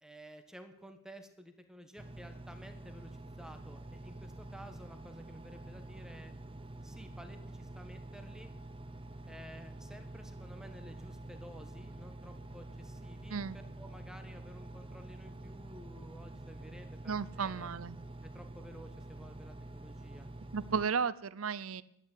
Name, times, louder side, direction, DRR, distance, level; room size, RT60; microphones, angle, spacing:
voice 1, 0.0-6.3 6.8-8.5 9.3-13.4 13.8-17.7 18.3-20.3, equal, 5° right, 7 dB, 1.4 m, -53 dB
Engine, 2.0-20.9, right 1 dB, 25° right, 0.9 m, -47 dB
voice 2, 17.1-18.0 20.5-21.8, right 6 dB, 75° right, 18 dB, 0.7 m, -34 dB
11.5 x 9.5 x 9.9 m, 0.75 s
head